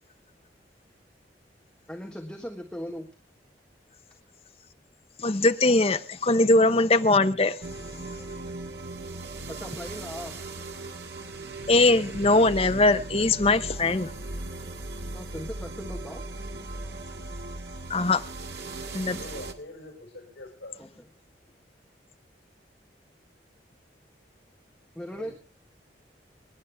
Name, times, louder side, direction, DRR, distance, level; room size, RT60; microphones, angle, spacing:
voice 1, 1.9-3.1 9.5-10.4 15.1-16.2 24.9-25.3, equal, 5° left, 1.5 m, -38 dB
voice 2, 5.2-7.6 11.7-14.1 17.9-18.2 18.9-19.2, left 2 dB, 35° left, 0.8 m, -21 dB
sound 1, 7.6-19.5, right 2 dB, 70° right, 1.9 m, -38 dB
voice 3, 19.1-20.8 25.1-25.3, left 1 dB, 75° left, 5.7 m, -44 dB
25.5 x 11.0 x 3.5 m
head